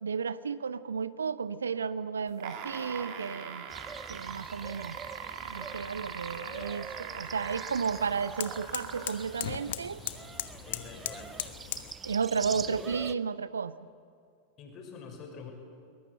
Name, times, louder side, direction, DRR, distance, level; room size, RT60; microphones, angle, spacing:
voice 1, 0.0-3.7 4.1-5.0 5.4-10.0 12.0-13.8, right 6 dB, 70° right, 17 dB, 0.6 m, -33 dB
sound 1, 2.3-9.2 10.1-10.2, right 8 dB, 45° right, 2.9 m, -41 dB
sound 2, 3.7-13.2, right 6 dB, 20° right, 0.7 m, -45 dB
sound 3, 5.1-11.9, left 13 dB, 55° left, 1.1 m, -41 dB
voice 2, 10.6-11.3 12.5-13.0 14.6-15.5, left 5 dB, 35° left, 3 dB, 5.6 m, -46 dB
22.5 x 20.5 x 8.1 m, 2.3 s
figure-of-eight pair, 90°, 0 cm